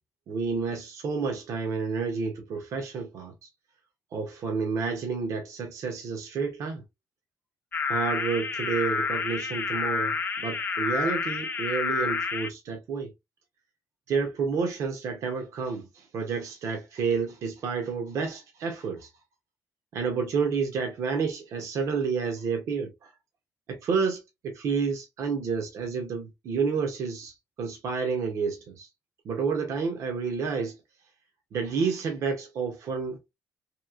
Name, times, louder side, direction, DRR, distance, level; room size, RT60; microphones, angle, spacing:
voice 1, 0.3-3.5 4.1-6.8 7.9-13.1 14.1-19.1 19.9-23.1 23.7-28.9 29.2-30.8 31.5-33.2, right 5 dB, 65° right, 0.7 m, -30 dB
sound 1, 7.7-12.5, left 4 dB, 35° left, 0.5 m, -29 dB
2.9 x 2.7 x 2.3 m
cardioid pair, 130°, 6 cm